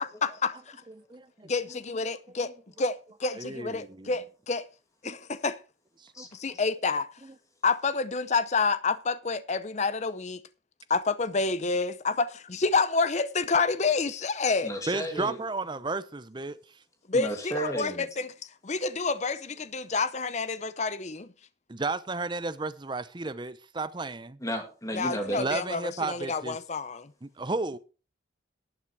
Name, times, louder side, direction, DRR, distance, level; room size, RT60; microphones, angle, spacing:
voice 1, 0.0-0.8 1.4-2.5 2.8-4.7 5.0-5.6 6.4-7.1 7.6-10.4 10.9-14.7 17.1-18.3 18.6-21.3 24.9-27.1, left 4 dB, 35° left, 0.6 m, -28 dB
voice 2, 0.9-1.8 2.4-2.5 3.3-4.1 5.0-5.2 6.0-6.6 7.2-7.3 14.9-16.8 21.7-24.4 25.4-26.6 27.2-27.8, right 3 dB, 25° right, 0.6 m, -34 dB
voice 3, 14.6-15.4 17.1-18.1 24.4-25.4, right 1 dB, 15° left, 2.5 m, -33 dB
12.0 x 8.7 x 4.7 m
head